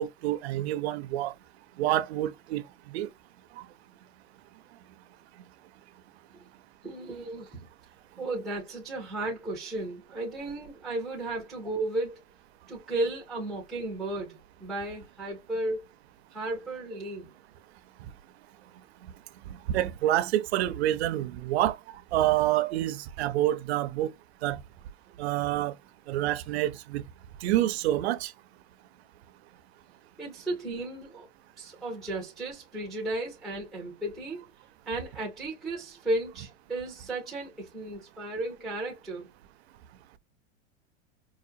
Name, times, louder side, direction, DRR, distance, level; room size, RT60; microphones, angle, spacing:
voice 1, 0.0-1.3 1.8-3.1 19.7-24.1 24.4-24.6 25.2-25.7 26.1-27.0 27.4-28.3, right 13 dB, 60° right, 0.6 m, -27 dB
voice 2, 6.8-7.7 8.2-12.2 12.7-15.8 16.3-17.3 30.2-31.3 31.6-34.4 34.9-39.3, right 2 dB, ahead, 0.3 m, -34 dB
4.9 x 2.4 x 2.6 m
supercardioid pair, 170°, 36 cm